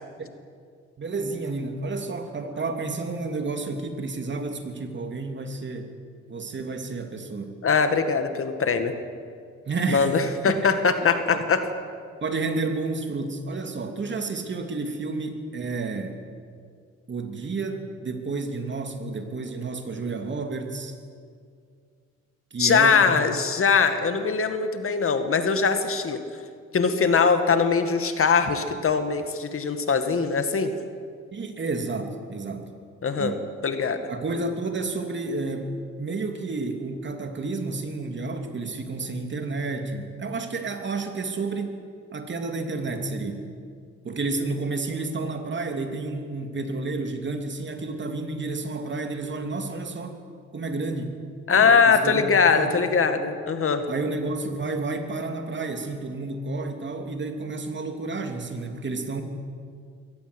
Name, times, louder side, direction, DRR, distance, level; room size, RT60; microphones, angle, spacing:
voice 1, 1.0-5.9 6.3-7.6 9.7-10.1 10.5-10.6 11.0-11.5 12.2-16.1 17.1-21.0 22.5-23.2 31.3-32.7 33.2-33.4 34.1-41.8 42.1-43.5 44.0-50.2 50.5-51.2 51.5-52.2 52.5-52.8 53.9-59.2, right 3 dB, 40° right, 6 dB, 2.9 m, -31 dB
voice 2, 7.6-8.9 9.9-11.6 22.6-26.2 26.7-30.7 33.0-33.3 33.6-34.0 51.5-53.8, left 5 dB, 45° left, 8 dB, 2.1 m, -21 dB
23.0 x 18.0 x 8.2 m, 2.2 s
cardioid pair, 90°, 30 cm